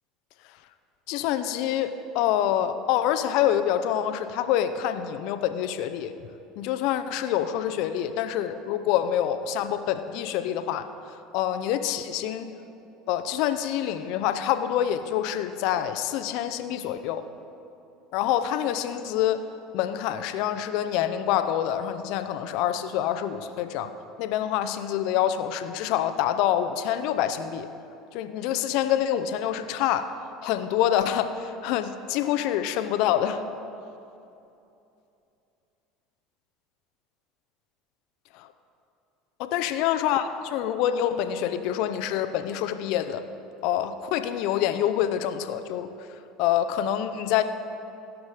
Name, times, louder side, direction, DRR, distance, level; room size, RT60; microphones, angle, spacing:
voice 1, 1.1-6.1 6.6-10.9 11.3-12.4 13.1-17.2 18.1-19.4 19.7-23.9 24.2-27.7 28.1-30.1 30.4-33.4 39.4-43.2 43.6-45.9 46.4-47.4, left 10 dB, 65° left, 10 dB, 0.6 m, -26 dB
16.0 x 6.1 x 4.9 m, 2.8 s
hypercardioid pair, 85°, 0 cm